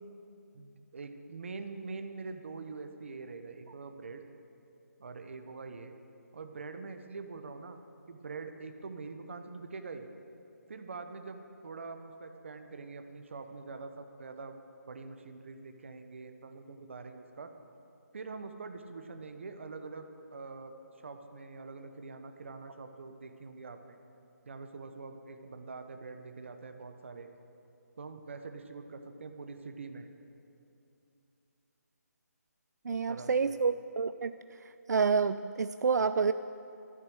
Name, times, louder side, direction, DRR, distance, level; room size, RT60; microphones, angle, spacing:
voice 1, 0.5-4.2 5.0-5.9 6.3-7.8 8.1-10.1 10.7-14.6 14.9-17.5 18.1-20.7 21.0-24.0 24.4-27.3 28.0-30.1 32.9-33.6, right 4 dB, 45° right, 7 dB, 0.9 m, -44 dB
voice 2, 32.8-36.3, right 5 dB, 80° right, 12 dB, 0.3 m, -29 dB
13.5 x 7.2 x 7.7 m, 2.7 s
hypercardioid pair, 175°, 9 cm